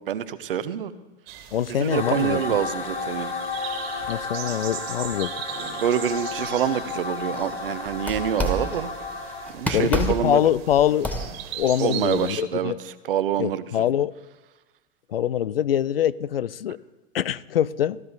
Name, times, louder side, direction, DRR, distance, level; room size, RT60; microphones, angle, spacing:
voice 1, 0.1-0.9 1.7-3.3 5.6-8.9 9.5-10.4 11.8-13.6, right 9 dB, 70° right, 0.8 m, -26 dB
sound 1, 1.3-12.4, right 10 dB, 50° right, 1.8 m, -40 dB
voice 2, 1.5-2.4 4.1-5.3 9.7-11.1 11.5-12.8 13.4-14.1 15.1-16.8 17.1-18.0, left 10 dB, 75° left, 0.5 m, -24 dB
sound 2, 1.9-9.5, left 4 dB, 20° left, 2.5 m, -32 dB
sound 3, 5.5-7.6 8.0-9.0 9.5-11.6, equal, 5° left, 2.0 m, -32 dB
16.0 x 13.0 x 3.9 m
figure-of-eight pair, 85°, 29 cm